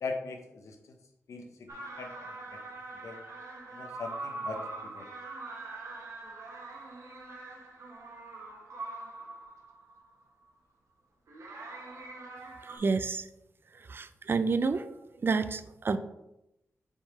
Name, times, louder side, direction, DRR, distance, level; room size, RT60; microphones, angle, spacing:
voice 1, 0.0-0.9 1.3-2.6 3.0-3.2 3.7-5.1, left 3 dB, 90° left, 4 dB, 0.9 m, -40 dB
sound 1, 1.7-10.1 11.3-12.8, right 2 dB, 75° right, 1.2 m, -43 dB
voice 2, 12.8-13.2 13.9-14.9 15.2-16.0, right 4 dB, 45° right, 11 dB, 0.4 m, -29 dB
5.2 x 3.7 x 4.8 m, 0.88 s
cardioid pair, 70°, 5 cm